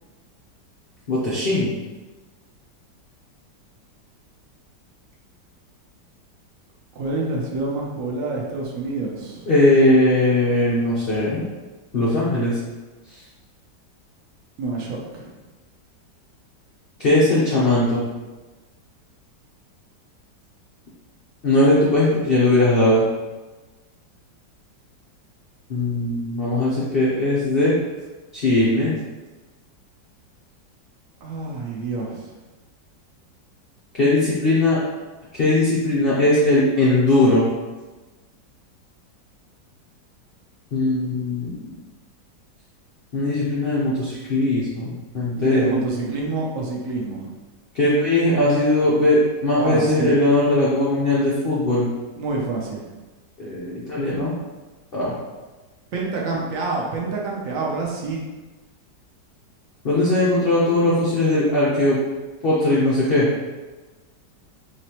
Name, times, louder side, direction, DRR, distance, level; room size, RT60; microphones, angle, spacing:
voice 1, 1.1-1.7 9.5-11.4 11.9-12.6 17.0-18.0 21.4-23.0 25.7-27.7 28.3-29.0 33.9-34.8 35.3-37.4 40.7-41.7 43.1-45.8 47.7-51.9 53.4-54.3 54.9-55.1 59.8-62.0 62.4-63.3, left 1 dB, 75° left, -7 dB, 0.5 m, -19 dB
voice 2, 6.9-9.5 14.6-15.3 31.2-32.3 45.4-47.3 49.6-50.2 52.2-52.8 55.9-58.2, right 3 dB, 60° right, -2 dB, 0.9 m, -27 dB
3.9 x 3.1 x 2.9 m, 1.2 s
omnidirectional pair, 1.9 m